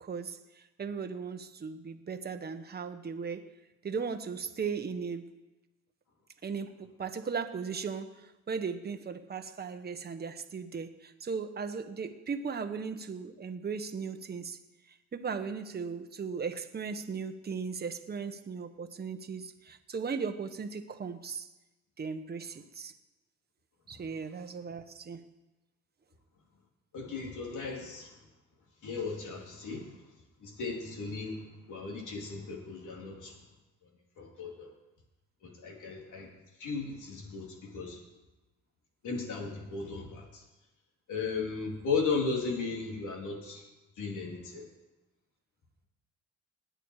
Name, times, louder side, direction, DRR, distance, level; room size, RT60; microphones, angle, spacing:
voice 1, 0.0-3.4 3.8-5.3 6.4-8.1 8.5-14.6 15.1-21.5 22.0-22.9 23.9-25.2, right 5 dB, 30° right, 7 dB, 1.2 m, -37 dB
voice 2, 26.9-28.2 28.8-30.0 30.4-33.4 33.8-33.9 34.2-34.7 35.4-36.3 36.6-38.0 39.0-40.4 41.1-43.6 44.0-44.6, left 4 dB, 65° left, 0 dB, 3.7 m, -36 dB
19.5 x 9.2 x 4.9 m, 1.1 s
cardioid pair, 85°, 33 cm